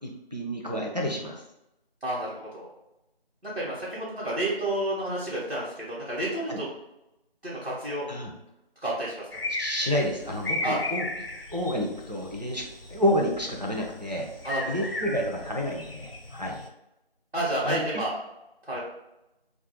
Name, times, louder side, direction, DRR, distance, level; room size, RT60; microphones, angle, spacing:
voice 1, 0.0-1.4 6.5-6.6 8.1-8.3 9.5-11.0 11.5-12.6 12.9-14.3 14.7-16.6 17.6-17.8, equal, 45° right, -1 dB, 0.5 m, -29 dB
voice 2, 2.0-2.7 3.4-6.7 7.4-8.1 8.8-9.4 10.6-10.8 14.4-14.9 17.3-18.1 18.6-18.8, right 1 dB, 70° right, -8 dB, 1.0 m, -30 dB
sound 1, 9.3-16.7, left 2 dB, 65° left, 0.5 m, -36 dB
2.3 x 2.2 x 2.8 m, 0.91 s
figure-of-eight pair, 175°, 30 cm